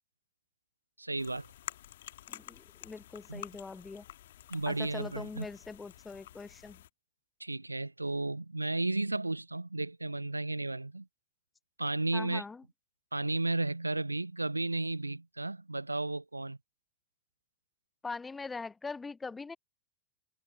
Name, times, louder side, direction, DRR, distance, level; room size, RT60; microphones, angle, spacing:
voice 1, 1.0-1.5 3.3-3.4 4.5-5.5 7.4-11.1 11.8-12.4 13.1-16.6, right 2 dB, 85° right, 0.5 m, -33 dB
sound 1, 1.2-6.9, left 13 dB, 60° left, 1.8 m, -49 dB
voice 2, 2.3-4.0 4.7-6.8 12.1-12.6 18.0-19.6, left 4 dB, 10° left, 0.4 m, -42 dB
figure-of-eight pair, 90°, 0 cm